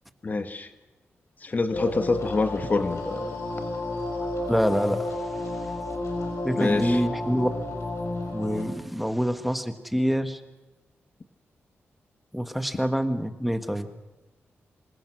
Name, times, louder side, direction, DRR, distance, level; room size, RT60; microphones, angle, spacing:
voice 1, 0.2-0.7 1.4-3.3 6.6-7.0, left 3 dB, 40° left, 9 dB, 1.2 m, -26 dB
sound 1, 1.7-8.6, left 2 dB, 80° left, 5.8 m, -31 dB
voice 2, 4.5-5.0 6.4-7.5 8.3-10.4 12.3-13.9, equal, ahead, 8 dB, 1.5 m, -26 dB
27.0 x 21.5 x 6.3 m, 1.1 s
wide cardioid pair, 95°, 5 cm